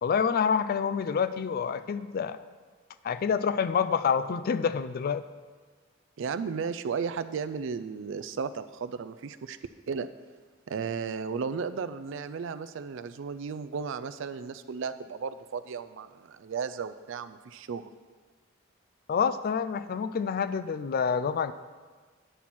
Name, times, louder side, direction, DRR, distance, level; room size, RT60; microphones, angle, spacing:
voice 1, 0.0-2.4 3.0-5.2 19.1-21.5, left 6 dB, 50° left, 13 dB, 0.3 m, -27 dB
voice 2, 6.2-9.6 9.9-10.1 10.7-17.9, right 5 dB, 65° right, 13 dB, 0.4 m, -34 dB
10.0 x 4.2 x 6.0 m, 1.4 s
head